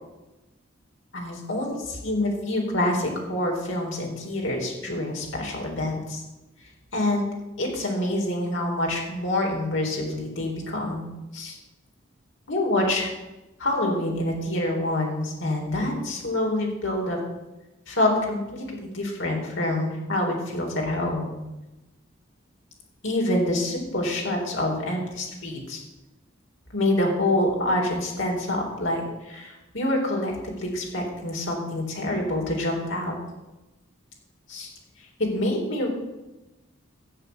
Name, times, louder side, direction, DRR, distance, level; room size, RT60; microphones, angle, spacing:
voice 1, 1.1-6.2 6.9-7.3 7.6-11.6 12.5-13.1 13.6-17.2 17.9-21.3 23.0-25.8 26.7-33.1 34.5-34.7 35.2-35.9, left 1 dB, 75° left, 0 dB, 4.0 m, -26 dB
13.0 x 7.9 x 7.8 m, 1.0 s
head